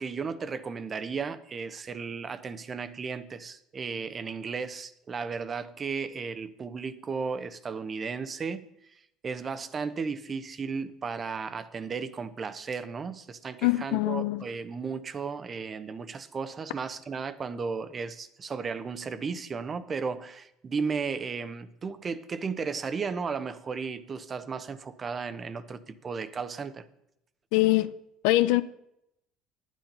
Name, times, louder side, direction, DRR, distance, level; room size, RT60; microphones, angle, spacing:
voice 1, 0.0-8.6 9.2-26.9, right 5 dB, 35° right, 0.9 m, -34 dB
voice 2, 13.6-14.5 27.5-27.9 28.2-28.6, left 18 dB, 75° left, 0.5 m, -23 dB
10.0 x 9.3 x 5.4 m
hypercardioid pair, 75°, 0 cm